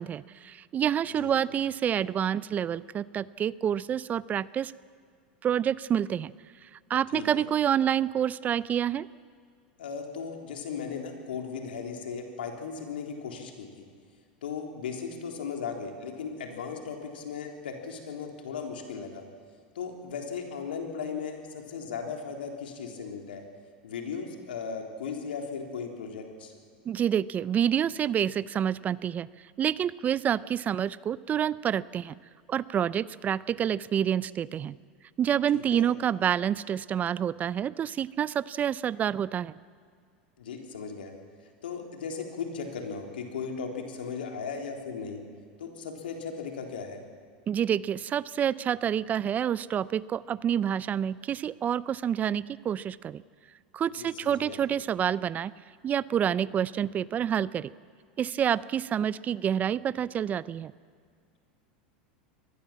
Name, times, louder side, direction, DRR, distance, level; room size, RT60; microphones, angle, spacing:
voice 1, 0.0-4.7 5.4-6.3 6.6-9.1 26.9-29.3 29.6-32.2 32.5-34.8 35.2-39.5 47.5-53.2 53.7-55.5 55.8-57.7 58.2-60.7, right 9 dB, 30° right, 20 dB, 0.5 m, -28 dB
voice 2, 7.1-7.4 9.8-13.8 14.4-19.2 19.8-23.5 23.8-26.5 35.5-35.9 40.4-41.1 41.6-45.2 45.6-47.0 54.0-54.6, left 6 dB, 85° left, 3 dB, 3.6 m, -37 dB
24.0 x 19.0 x 7.4 m, 2.1 s
hypercardioid pair, 105°, 5 cm